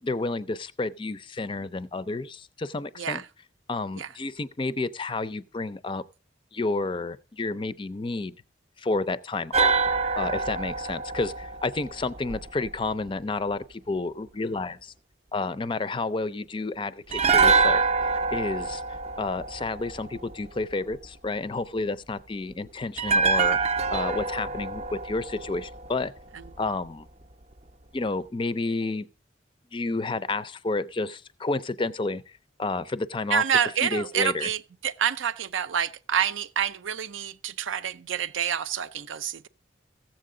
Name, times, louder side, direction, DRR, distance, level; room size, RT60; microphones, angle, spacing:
voice 1, 0.0-3.2 3.7-6.0 6.5-8.3 8.8-9.7 10.2-14.9 15.3-17.8 18.3-18.8 19.2-23.6 23.9-26.1 26.6-27.1 27.9-29.1 29.7-32.2 32.6-33.4 33.8-34.5, left 3 dB, 25° left, 0.4 m, -30 dB
sound 1, 9.5-12.7 17.1-20.3 23.0-26.2 26.5-26.6, right 4 dB, 35° right, 0.5 m, -25 dB
voice 2, 33.3-39.5, right 8 dB, 80° right, 0.6 m, -27 dB
15.0 x 7.6 x 3.7 m
head